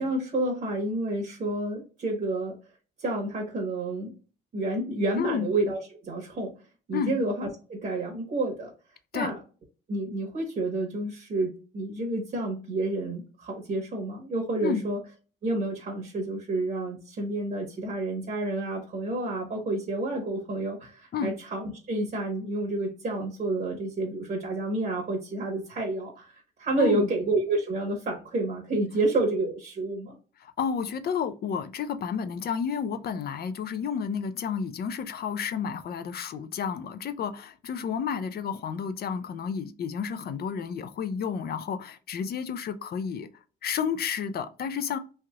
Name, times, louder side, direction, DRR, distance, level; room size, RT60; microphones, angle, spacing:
voice 1, 0.0-2.5 3.0-4.1 4.5-6.5 6.9-8.7 9.1-9.3 9.9-15.0 15.4-30.1, right 2 dB, 50° right, 1.1 m, -29 dB
voice 2, 5.2-5.5 6.9-7.1 9.1-9.3 14.6-14.8 21.1-21.3 26.8-27.1 30.4-43.3 43.6-45.0, left 7 dB, 50° left, 0.4 m, -31 dB
3.2 x 2.7 x 2.3 m
cardioid pair, 90°, 20 cm